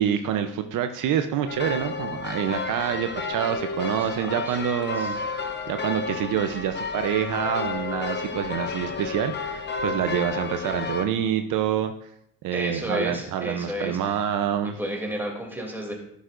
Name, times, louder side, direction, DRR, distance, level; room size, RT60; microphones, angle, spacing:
voice 1, 0.0-11.9 12.4-14.8, right 9 dB, 65° right, 7 dB, 0.8 m, -27 dB
sound 1, 1.5-11.1, left 4 dB, 30° left, 1.2 m, -31 dB
voice 2, 4.4-5.2 12.5-14.2 14.8-15.9, equal, 5° right, 0 dB, 2.8 m, -32 dB
12.5 x 10.5 x 2.6 m, 0.74 s
cardioid pair, 115°, 34 cm